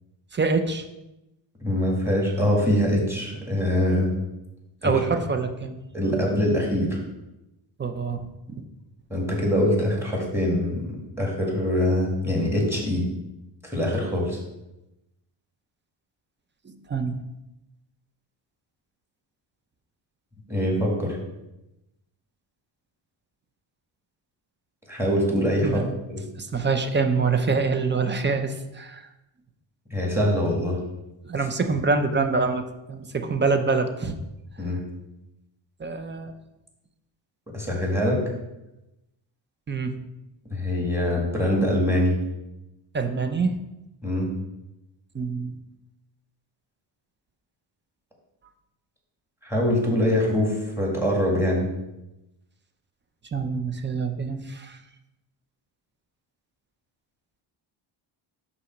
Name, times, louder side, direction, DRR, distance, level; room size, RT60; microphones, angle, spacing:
voice 1, 0.3-0.8 4.8-5.7 7.8-8.3 16.7-17.2 25.6-25.9 26.4-29.1 31.2-34.1 35.8-36.3 39.7-40.0 42.9-43.5 45.1-45.6 53.3-54.8, right 4 dB, 25° right, 7 dB, 0.5 m, -25 dB
voice 2, 1.6-4.1 4.8-5.0 5.9-7.0 9.1-13.1 13.6-14.4 20.5-21.2 24.9-25.8 26.1-26.2 29.9-30.8 34.6-34.8 37.5-38.2 40.5-42.2 44.0-44.3 49.4-51.7, left 1 dB, 5° right, -2 dB, 1.9 m, -23 dB
5.4 x 4.1 x 6.0 m, 0.93 s
cardioid pair, 120°, 49 cm